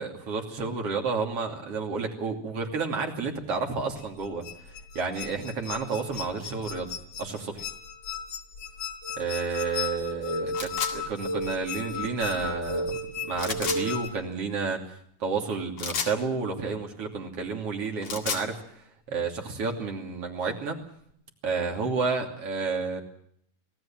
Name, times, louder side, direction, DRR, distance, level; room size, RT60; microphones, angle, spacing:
voice 1, 0.0-4.4 5.0-6.9 7.2-7.7 9.2-14.9 15.2-20.8 21.4-23.0, right 4 dB, 50° right, 2 dB, 3.7 m, -31 dB
sound 1, 4.0-14.1, left 3 dB, 85° left, 5.1 m, -34 dB
sound 2, 10.5-10.9 13.4-13.8 15.8-16.2 17.9-18.5, left 6 dB, 55° left, 3.1 m, -31 dB
25.5 x 17.5 x 7.5 m, 0.66 s
omnidirectional pair, 3.5 m